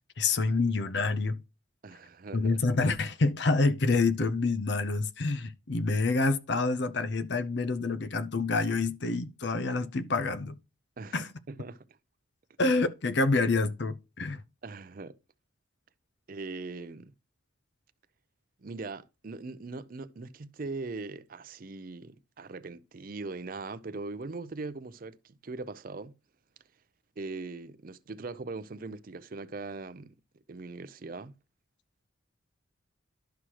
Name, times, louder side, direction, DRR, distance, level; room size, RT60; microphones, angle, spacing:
voice 1, 0.2-1.4 2.3-10.6 11.1-11.3 12.6-14.4, left 3 dB, 55° left, 0.6 m, -27 dB
voice 2, 1.8-2.6 11.0-12.0 14.6-15.2 16.3-17.1 18.6-26.2 27.2-30.2 30.5-31.4, right 3 dB, 45° right, 0.5 m, -40 dB
11.5 x 6.2 x 2.9 m
head